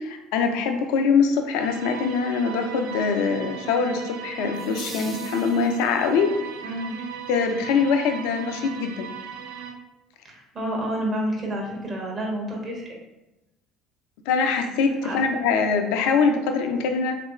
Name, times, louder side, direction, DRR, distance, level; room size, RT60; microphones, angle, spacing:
voice 1, 0.0-6.3 7.3-9.1 14.3-17.1, left 5 dB, 65° left, 5 dB, 0.5 m, -23 dB
sound 1, 1.6-9.7, right 8 dB, 70° right, 0.4 m, -37 dB
sound 2, 4.5-6.1, right 1 dB, 15° right, 0.9 m, -41 dB
voice 2, 10.2-12.9 15.0-15.2, right 1 dB, 35° right, -2 dB, 1.5 m, -29 dB
3.6 x 3.3 x 3.0 m, 0.97 s
figure-of-eight pair, 60°, 0 cm